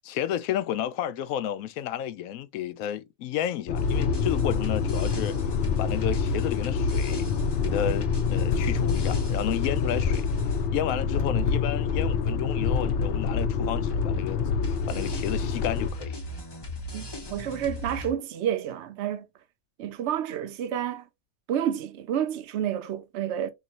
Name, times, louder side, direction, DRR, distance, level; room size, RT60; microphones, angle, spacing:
voice 1, 0.0-5.4 5.8-7.3 7.6-10.3 10.7-16.2, left 11 dB, 80° left, 1.0 m, -32 dB
sound 1, 3.7-15.9, left 5 dB, 60° left, 0.7 m, -26 dB
sound 2, 3.7-18.1, equal, 25° left, 0.6 m, -38 dB
voice 2, 16.9-19.2 19.8-21.1 21.5-23.5, right 10 dB, 60° right, 0.9 m, -30 dB
4.0 x 3.0 x 2.9 m
omnidirectional pair, 1.5 m